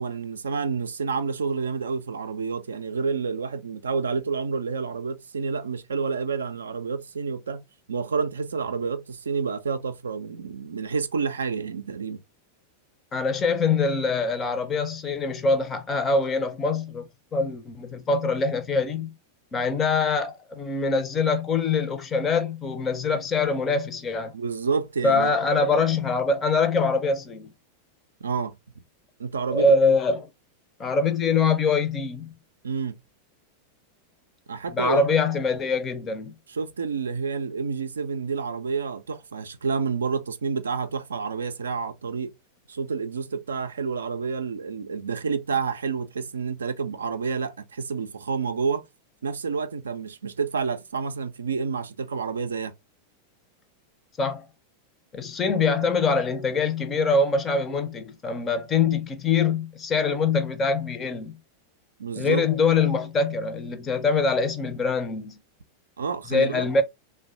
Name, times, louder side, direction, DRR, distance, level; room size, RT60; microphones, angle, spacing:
voice 1, 0.0-12.2 24.3-25.3 28.2-28.6 29.2-29.8 32.6-33.0 34.5-35.0 36.5-42.3 42.7-48.8 49.2-52.7 62.0-62.4 66.0-66.7, right 5 dB, 70° right, 0.3 m, -29 dB
voice 2, 13.1-19.1 19.5-24.3 25.0-27.5 29.5-30.2 30.8-32.3 34.7-36.3 54.2-54.5 55.1-61.4 62.2-65.4 66.3-66.8, left 4 dB, 20° left, 0.5 m, -24 dB
3.2 x 2.2 x 2.6 m
figure-of-eight pair, 90°, 0 cm